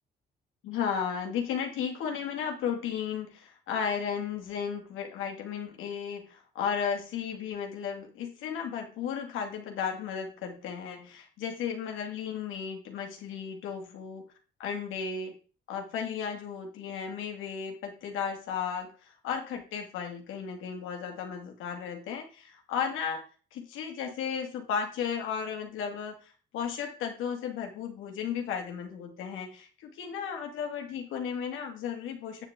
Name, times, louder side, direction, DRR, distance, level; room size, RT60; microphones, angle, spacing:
voice 1, 0.6-14.3 14.6-15.3 15.7-23.2 23.5-32.5, left 7 dB, 90° left, 3 dB, 2.3 m, -34 dB
9.3 x 7.3 x 3.7 m, 0.37 s
cardioid pair, 90°, 20 cm